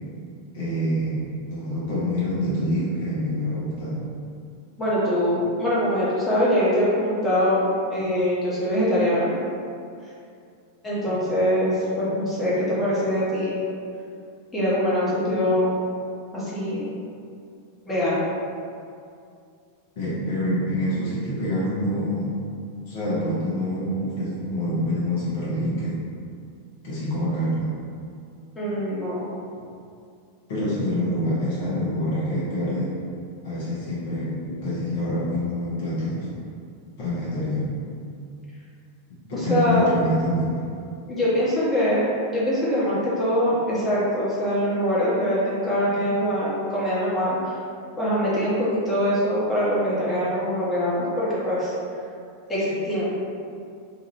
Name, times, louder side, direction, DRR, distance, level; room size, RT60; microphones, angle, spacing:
voice 1, 0.5-4.0 20.0-22.4 22.9-26.0 26.8-27.7 30.5-33.0 33.4-36.4 37.0-37.7 39.3-40.6, equal, 55° left, -8 dB, 0.9 m, -26 dB
voice 2, 4.8-9.3 10.8-13.6 14.5-15.7 16.3-16.9 17.9-18.2 28.6-29.3 39.3-39.9 41.1-47.6 48.0-51.7 52.5-53.0, equal, 15° left, -9 dB, 1.0 m, -23 dB
2.8 x 2.4 x 3.0 m, 2.4 s
figure-of-eight pair, 90°, 0 cm